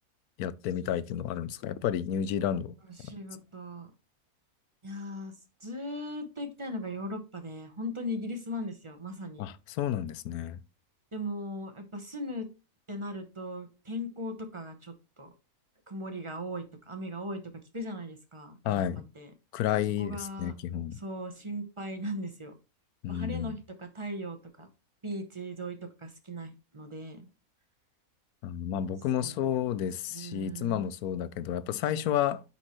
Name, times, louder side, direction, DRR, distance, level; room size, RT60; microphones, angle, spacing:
voice 1, 0.4-2.7 3.0-3.1 9.4-10.6 18.6-19.1 19.5-21.0 23.0-23.6 28.4-32.4, left 10 dB, 85° left, 1.1 m, -31 dB
voice 2, 3.0-3.9 4.8-5.3 5.6-9.5 11.1-12.5 12.9-15.3 15.9-17.4 17.7-18.8 19.1-19.3 20.0-20.5 20.9-22.5 23.1-24.7 25.0-27.2 29.2-29.5 30.1-30.9, equal, 25° right, 0.8 m, -38 dB
9.7 x 4.4 x 3.1 m
omnidirectional pair, 1.5 m